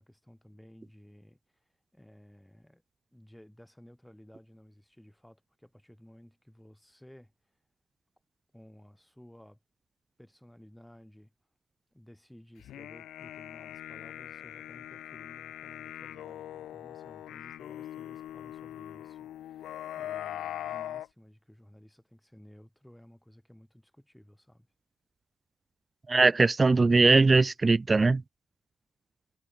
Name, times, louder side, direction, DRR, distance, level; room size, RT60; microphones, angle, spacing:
voice 1, 0.0-2.8 3.1-7.3 8.5-9.6 10.2-11.3 11.9-24.7, equal, 5° left, 7.6 m, -55 dB
sound 1, 12.6-21.1, left 12 dB, 80° left, 0.5 m, -41 dB
voice 2, 26.1-28.2, right 3 dB, 25° right, 0.4 m, -21 dB
cardioid pair, 90°, 0 cm